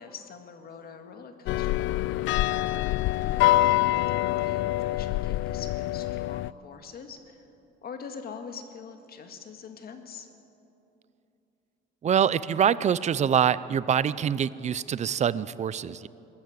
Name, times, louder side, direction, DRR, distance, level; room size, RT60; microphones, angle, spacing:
voice 1, 0.0-7.4 7.8-10.3, left 6 dB, 50° left, 6 dB, 2.0 m, -44 dB
sound 1, 1.5-6.5, left 16 dB, 70° left, 0.4 m, -25 dB
voice 2, 12.0-16.1, right 8 dB, 35° right, 17 dB, 0.5 m, -25 dB
20.0 x 14.5 x 9.6 m, 2.8 s
cardioid pair, 140°, 20 cm